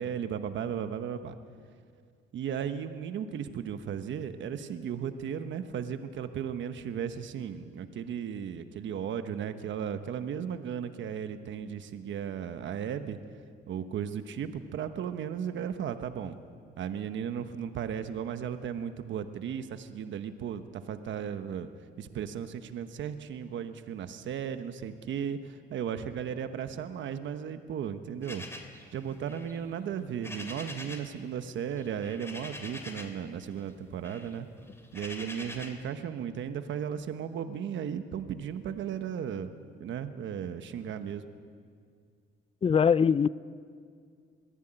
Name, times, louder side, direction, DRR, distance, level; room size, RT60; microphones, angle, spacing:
voice 1, 0.0-1.3 2.3-13.2 13.7-16.4 16.8-21.7 22.0-28.4 28.9-34.5 34.9-41.2, right 8 dB, 70° right, 9 dB, 1.2 m, -35 dB
sound 1, 28.2-31.2 31.4-33.3 33.6-35.9, left 1 dB, 10° left, 3.0 m, -45 dB
voice 2, 42.6-43.3, left 6 dB, 30° left, 19 dB, 0.5 m, -22 dB
22.5 x 15.0 x 9.0 m, 2.2 s
cardioid pair, 90°, 20 cm